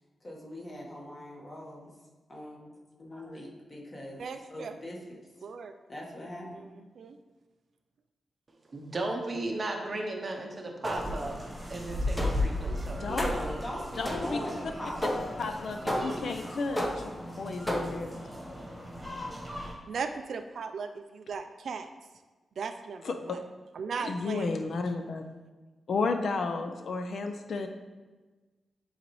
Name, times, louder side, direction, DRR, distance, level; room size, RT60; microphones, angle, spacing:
voice 1, 0.2-1.9 2.3-2.7 3.0-4.2 4.5-5.2 5.9-6.6 13.1-15.3 15.8-16.1, left 1 dB, 25° left, -2 dB, 1.3 m, -40 dB
voice 2, 4.2-4.7 5.4-5.7 7.0-7.2 19.9-21.9 22.6-23.4 23.8-24.5, right 5 dB, 60° right, 7 dB, 0.4 m, -37 dB
voice 3, 8.7-11.4 11.7-13.1, right 2 dB, 30° right, 2 dB, 0.7 m, -35 dB
sound 1, 10.8-11.3 12.2-12.6 13.2-13.6 14.0-14.5 15.0-15.4 15.9-16.3 16.8-17.2 17.7-18.1, equal, 10° left, 0.7 m, -33 dB
sound 2, 10.9-19.7, left 1 dB, 15° right, 1.3 m, -37 dB
voice 4, 14.0-14.4 15.4-17.1 17.4-18.3 23.0-23.1 24.0-25.2 25.9-27.7, left 4 dB, 55° left, 6 dB, 0.5 m, -32 dB
10.0 x 4.0 x 3.1 m, 1.3 s
wide cardioid pair, 165°, 0 cm